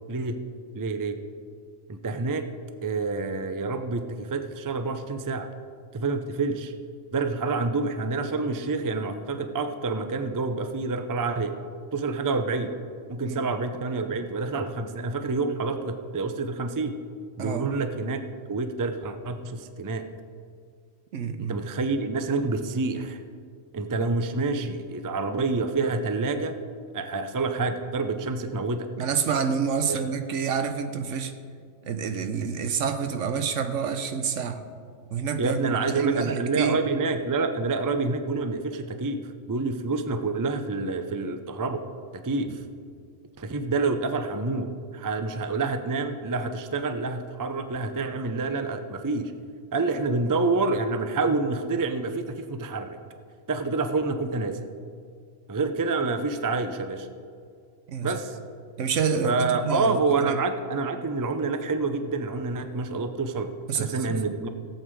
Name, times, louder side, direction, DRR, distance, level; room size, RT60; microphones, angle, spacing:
voice 1, 0.1-0.4 0.7-1.1 1.9-2.4 2.8-5.5 5.9-6.7 7.1-11.5 11.9-12.7 13.1-16.9 17.4-18.2 18.5-20.1 21.4-23.2 23.7-26.6 26.9-28.9 29.9-30.0 35.4-39.2 39.5-41.8 42.1-42.6 43.4-49.3 49.7-53.0 53.5-54.6 55.5-57.1 58.0-58.4 59.2-64.5, right 3 dB, 25° right, 8 dB, 0.4 m, -28 dB
voice 2, 17.4-17.7 21.1-21.5 24.0-24.1 29.0-31.4 31.8-34.7 35.1-36.8 42.4-42.6 57.9-58.2 58.8-60.4 63.7-64.2, right 6 dB, 75° right, 8 dB, 1.1 m, -28 dB
17.0 x 7.9 x 4.7 m, 2.2 s
omnidirectional pair, 1.3 m